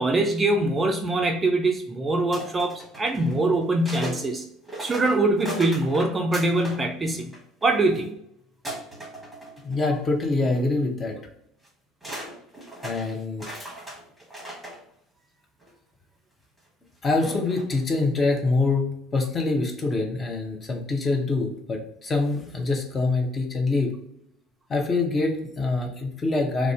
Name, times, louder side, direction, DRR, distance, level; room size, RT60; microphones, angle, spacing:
voice 1, 0.0-4.4 4.8-7.3 7.6-8.1, right 2 dB, 20° right, 3 dB, 0.3 m, -23 dB
sound 1, 2.3-4.2 4.6-6.8 7.1-8.0 8.6-10.1 10.4-10.6 11.6-11.7 12.0-14.8 15.6-15.7 17.1-17.8, right 1 dB, 5° right, 1.0 m, -38 dB
voice 2, 9.6-11.1 12.8-13.4 17.0-23.9 24.7-26.7, left 3 dB, 25° left, 2 dB, 0.6 m, -25 dB
2.4 x 2.0 x 3.4 m, 0.76 s
figure-of-eight pair, 65°, 0 cm